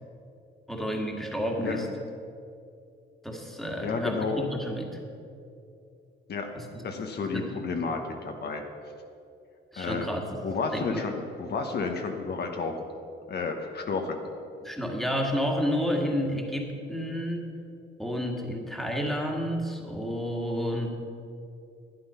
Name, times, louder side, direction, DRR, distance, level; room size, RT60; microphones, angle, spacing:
voice 1, 0.7-1.9 3.2-5.0 6.5-6.8 7.3-7.5 9.7-10.4 10.7-11.1 14.6-17.5 18.0-20.9, equal, ahead, 0 dB, 1.9 m, -30 dB
voice 2, 3.8-4.4 6.3-6.5 6.8-8.6 9.8-10.1 10.4-12.7 13.3-14.2, left 4 dB, 55° left, 3 dB, 1.1 m, -31 dB
12.0 x 9.5 x 5.7 m, 2.6 s
cardioid pair, 90°, 20 cm